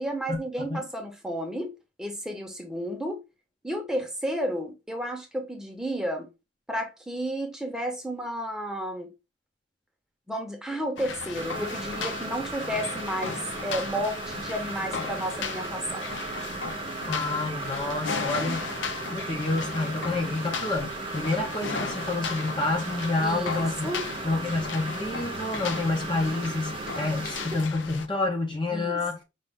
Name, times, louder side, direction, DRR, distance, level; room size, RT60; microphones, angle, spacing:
voice 1, 0.0-1.7 2.0-3.2 3.6-6.3 6.7-9.1 10.3-16.1 18.5-18.6 23.2-24.1 28.7-29.2, equal, 5° right, 0.9 m, -32 dB
sound 1, 11.0-28.1, left 5 dB, 80° left, 0.6 m, -36 dB
sound 2, 11.4-27.7, right 4 dB, 25° right, 0.4 m, -37 dB
voice 2, 17.1-18.7 19.1-23.9 24.2-29.2, left 2 dB, 25° left, 0.7 m, -28 dB
5.2 x 2.6 x 3.6 m
head